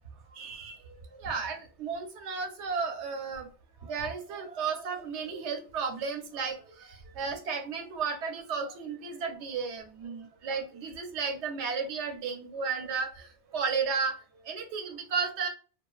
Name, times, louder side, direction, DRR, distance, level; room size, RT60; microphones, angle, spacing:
voice 1, 0.3-0.7 1.2-3.5 3.9-13.3 13.5-14.1 14.5-15.5, right 5 dB, 75° right, 5 dB, 0.9 m, -33 dB
2.4 x 2.2 x 2.3 m, 0.37 s
omnidirectional pair, 1.2 m